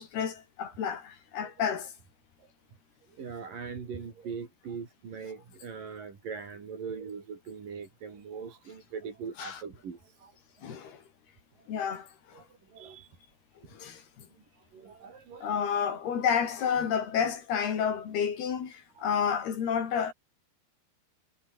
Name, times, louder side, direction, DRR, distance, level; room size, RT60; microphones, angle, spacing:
voice 1, 0.0-1.9 9.4-9.6 10.6-11.0 11.7-12.1 13.7-14.3 15.4-20.1, left 7 dB, 70° left, 5.3 m, -30 dB
voice 2, 3.2-10.4 12.3-13.2 14.5-15.7 19.0-19.1, right 6 dB, 55° right, 5.5 m, -41 dB
omnidirectional pair, 4.6 m